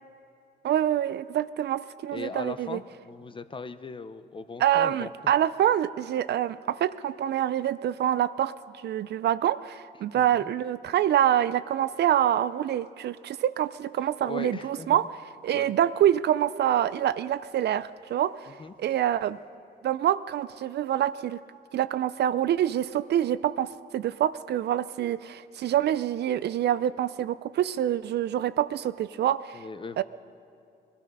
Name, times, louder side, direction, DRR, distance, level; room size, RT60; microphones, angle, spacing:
voice 1, 0.6-2.8 4.6-8.5 8.8-15.0 15.4-18.3 18.8-19.4 19.8-21.4 21.7-29.6 30.0-30.1, right 11 dB, 60° right, 16 dB, 0.4 m, -26 dB
voice 2, 2.1-5.1 10.1-10.5 14.2-15.1 15.5-15.7 18.6-18.7 29.5-30.0, left 4 dB, 25° left, 12 dB, 0.6 m, -39 dB
20.5 x 12.5 x 5.3 m, 2.5 s
cardioid pair, 90°, 20 cm